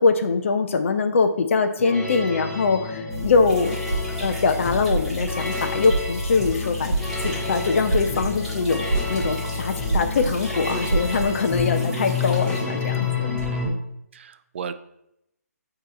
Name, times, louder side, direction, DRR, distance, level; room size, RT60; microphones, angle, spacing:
voice 1, 0.0-3.8 4.2-6.9 7.2-13.8, left 4 dB, 50° left, 7 dB, 0.5 m, -23 dB
sound 1, 1.8-13.7, left 4 dB, 15° left, 1.6 m, -30 dB
sound 2, 3.1-11.3, right 1 dB, 65° right, 0.9 m, -29 dB
sound 3, 3.5-12.6, equal, ahead, 2.2 m, -41 dB
voice 2, 14.1-14.7, right 7 dB, 45° right, 12 dB, 0.4 m, -35 dB
8.0 x 2.9 x 4.1 m, 0.81 s
figure-of-eight pair, 145°, 9 cm